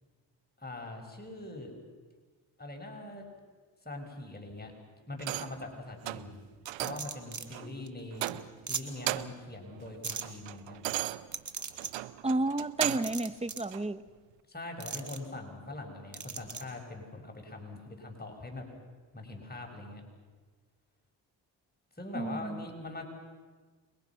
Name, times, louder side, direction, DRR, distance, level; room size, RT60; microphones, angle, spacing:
voice 1, 0.6-1.7 2.6-3.3 3.8-4.7 5.1-6.4 6.8-8.4 8.7-10.8 14.5-18.7 19.1-20.0 22.0-23.0, left 2 dB, 20° left, 2 dB, 5.8 m, -42 dB
sound 1, 5.2-5.6 6.0-6.3 6.7-7.1 7.5-7.7 8.1-8.6 8.9-9.5 9.9-13.2 13.7-13.8, right 16 dB, 90° right, 0.7 m, -36 dB
sound 2, 6.7-7.5 7.9-8.0 8.3-8.4 8.7-8.8 10.0-10.2 11.3-11.9 12.9-13.7 14.8-15.2 16.1-16.6, right 5 dB, 40° right, 2.3 m, -38 dB
voice 2, 12.2-14.0 22.1-22.6, right 2 dB, 15° right, 13 dB, 1.2 m, -31 dB
28.5 x 22.5 x 5.9 m, 1.4 s
supercardioid pair, 55°, 44 cm